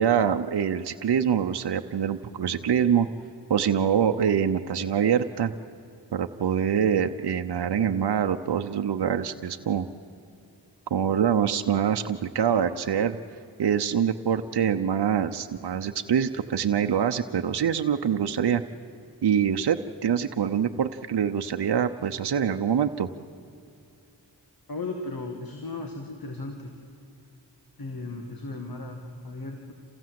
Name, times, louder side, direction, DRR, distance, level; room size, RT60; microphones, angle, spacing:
voice 1, 0.0-3.1 3.5-5.5 6.1-9.9 10.9-13.2 13.6-18.6 19.2-23.1, right 8 dB, 65° right, 6 dB, 0.8 m, -25 dB
voice 2, 24.7-26.7 27.8-29.7, left 3 dB, 55° left, 3 dB, 2.1 m, -36 dB
28.0 x 15.5 x 7.7 m, 2.6 s
cardioid pair, 55°, 42 cm